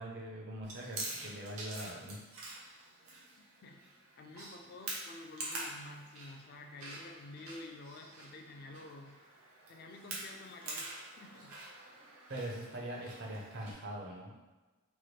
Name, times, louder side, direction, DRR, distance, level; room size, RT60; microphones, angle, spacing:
voice 1, 0.0-2.2 2.5-2.6 12.3-14.3, right 1 dB, 55° right, -2 dB, 0.6 m, -42 dB
Chewing mastication, 0.6-13.7, right 2 dB, 85° right, 0.8 m, -46 dB
voice 2, 3.4-9.2 9.7-11.6, left 2 dB, 45° left, 4 dB, 0.3 m, -50 dB
3.0 x 2.3 x 3.1 m, 1.2 s
head